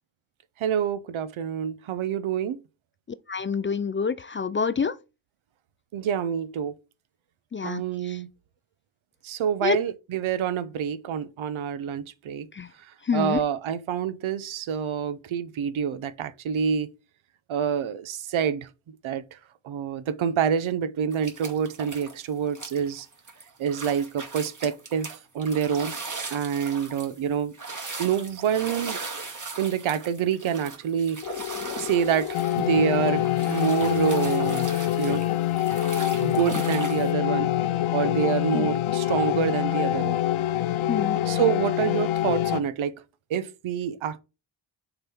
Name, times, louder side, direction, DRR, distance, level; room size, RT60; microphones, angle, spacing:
voice 1, 0.6-2.6 5.9-6.7 7.6-8.3 9.2-12.5 13.1-16.9 17.5-18.7 19.0-19.2 19.6-23.1 23.6-25.1 25.3-25.9 26.3-27.5 28.0-29.0 29.6-31.2 31.8-34.7 35.0-35.3 36.2-37.5 37.9-40.2 41.3-43.0 43.3-44.2, right 8 dB, 80° right, 0.8 m, -27 dB
voice 2, 3.3-5.0 7.5-8.2 9.6-9.8 12.5-12.7 13.1-13.4 38.5-38.7 40.9-41.2, left 6 dB, 25° left, 0.4 m, -27 dB
sound 1, 21.1-22.2 22.5-37.1, right 4 dB, 40° right, 2.1 m, -38 dB
sound 2, 31.2-42.6, left 13 dB, 75° left, 0.7 m, -25 dB
6.7 x 4.0 x 4.4 m
cardioid pair, 80°, 48 cm